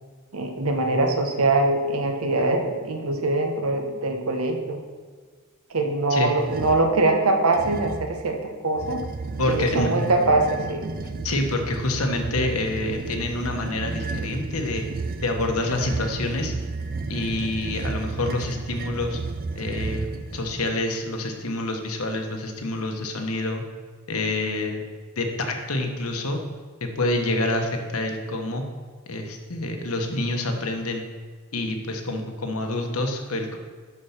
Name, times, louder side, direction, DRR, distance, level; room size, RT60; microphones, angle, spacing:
voice 1, 0.3-4.8 5.7-9.0 9.4-10.8, right 2 dB, 75° right, 4 dB, 1.2 m, -23 dB
sound 1, 6.4-6.9 7.5-8.2 8.7-20.8, right 3 dB, 40° right, 0.5 m, -32 dB
voice 2, 9.4-10.0 11.2-14.9 15.2-16.5 17.1-19.2 19.5-23.6 24.1-24.8 25.2-26.4 26.8-28.6 29.1-31.1 31.5-33.6, left 2 dB, 85° left, 4 dB, 1.3 m, -27 dB
11.5 x 4.7 x 5.9 m, 1.5 s
head